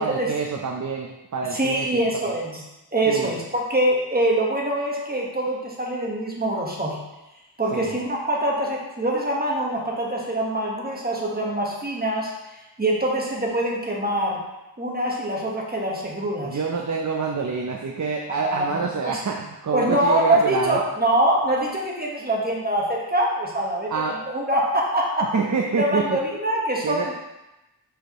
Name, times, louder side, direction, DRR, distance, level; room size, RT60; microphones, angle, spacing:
voice 1, 0.0-1.9 2.3-2.4 3.1-3.4 7.7-8.0 16.4-20.8 23.9-24.2 25.3-26.2 26.8-27.1, right 5 dB, 40° right, 1 dB, 0.6 m, -27 dB
voice 2, 1.5-2.6 2.9-7.0 7.6-12.3 12.8-14.4 14.8-16.6 18.4-19.2 19.7-25.3 25.8-27.1, right 1 dB, 20° right, -2 dB, 1.4 m, -24 dB
6.8 x 4.8 x 3.0 m, 0.97 s
wide cardioid pair, 80°, 44 cm